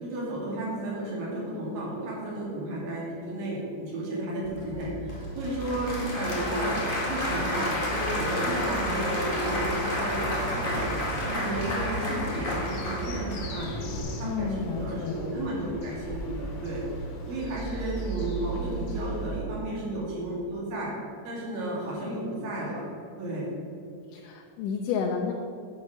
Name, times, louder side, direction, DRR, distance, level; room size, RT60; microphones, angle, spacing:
voice 1, 0.0-10.8 11.2-16.8 17.3-20.9 21.2-22.9 23.2-23.5, right 1 dB, 80° right, -5 dB, 4.0 m, -33 dB
Applause / Crowd, 4.4-14.0, left 1 dB, 25° left, 1.0 m, -30 dB
sound 1, 10.5-19.4, right 2 dB, 60° left, 2.1 m, -37 dB
voice 2, 14.2-15.4 24.1-25.3, left 6 dB, 80° left, 0 dB, 2.2 m, -31 dB
9.6 x 5.4 x 6.3 m, 2.6 s
omnidirectional pair, 3.9 m